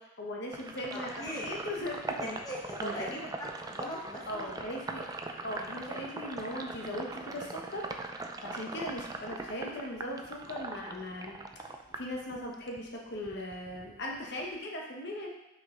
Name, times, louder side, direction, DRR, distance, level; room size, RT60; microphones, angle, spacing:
voice 1, 0.0-2.3 2.8-3.3 4.3-5.1 5.4-7.9 8.4-11.4 12.0-15.3, left 1 dB, 55° left, -1 dB, 1.1 m, -39 dB
Sink (filling or washing), 0.5-12.8 13.1-14.6, right 3 dB, 15° right, 0.3 m, -41 dB
voice 2, 0.9-1.4 2.2-4.8 5.6-5.7 8.6-8.7, left 1 dB, 20° left, -5 dB, 1.2 m, -40 dB
5.6 x 4.9 x 3.8 m, 0.91 s
head